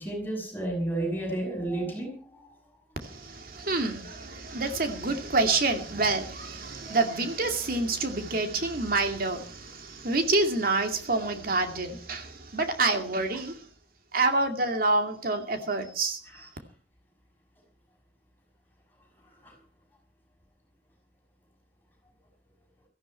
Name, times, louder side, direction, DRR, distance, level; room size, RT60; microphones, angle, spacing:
voice 1, 0.0-2.4 6.8-7.0 19.4-19.5, right 1 dB, 10° left, 5.9 m, -32 dB
voice 2, 3.0-13.6 14.1-16.5, right 3 dB, 55° right, 2.3 m, -28 dB
17.0 x 14.0 x 4.5 m
head